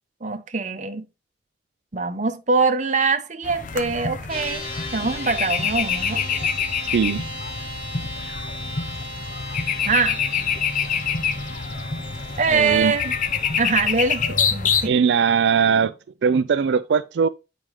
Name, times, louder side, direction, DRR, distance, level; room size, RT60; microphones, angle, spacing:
voice 1, 0.2-1.1 1.9-4.7 4.9-6.2 9.7-10.2 12.4-13.1 13.6-14.9, right 4 dB, 45° right, 0.8 m, -23 dB
sound 1, 3.4-14.9, left 6 dB, 45° left, 0.7 m, -26 dB
sound 2, 4.3-15.1, left 1 dB, 30° left, 2.8 m, -36 dB
voice 2, 6.9-7.2 12.5-12.9 14.8-15.9 16.2-17.3, right 6 dB, 80° right, 0.4 m, -20 dB
8.9 x 5.1 x 3.0 m
head